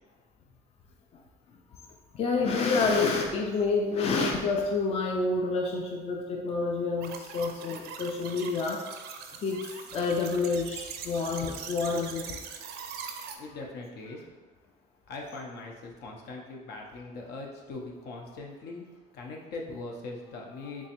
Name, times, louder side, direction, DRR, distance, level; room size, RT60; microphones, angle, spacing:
voice 1, 2.1-8.8 9.4-12.4, left 4 dB, 40° left, 1 dB, 0.4 m, -28 dB
sound 1, 7.0-13.4, right 7 dB, 70° right, 0.4 m, -42 dB
voice 2, 13.4-14.2 15.1-20.9, left 3 dB, 75° left, 0 dB, 0.7 m, -41 dB
3.5 x 3.0 x 2.9 m, 1.3 s
cardioid pair, 110°, 17 cm